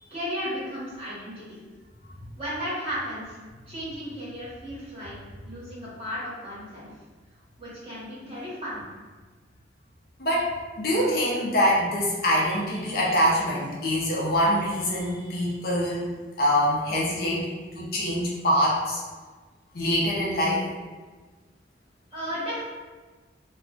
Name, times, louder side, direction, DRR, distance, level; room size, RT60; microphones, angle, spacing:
voice 1, 0.1-1.6 2.4-3.4 3.7-5.1 5.4-6.9 7.6-8.8 22.1-22.6, equal, 30° right, -9 dB, 1.1 m, -34 dB
voice 2, 10.8-16.1 16.4-17.5 17.7-19.0 19.7-20.6, equal, 50° left, -5 dB, 0.6 m, -24 dB
2.3 x 2.2 x 3.7 m, 1.4 s
head